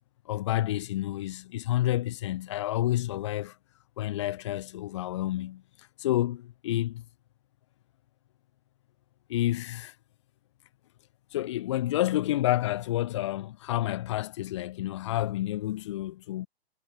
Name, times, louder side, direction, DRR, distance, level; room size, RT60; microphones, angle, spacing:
voice 1, 0.3-3.6 4.0-7.0 9.3-9.9 11.3-16.5, left 14 dB, 25° left, 7.4 m, -29 dB
hypercardioid pair, 180°, 32 cm